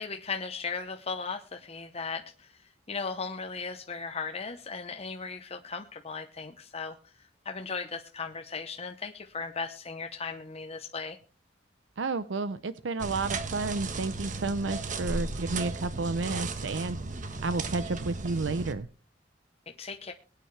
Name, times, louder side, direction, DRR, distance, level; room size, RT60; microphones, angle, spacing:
voice 1, 0.0-7.1 7.4-11.2 19.7-20.1, left 4 dB, 35° left, 4 dB, 0.9 m, -37 dB
voice 2, 12.0-17.0 17.4-18.9, right 3 dB, 85° right, 13 dB, 0.6 m, -31 dB
sound 1, 13.0-18.7, right 3 dB, 45° right, 1.3 m, -35 dB
22.5 x 9.1 x 3.3 m, 0.36 s
head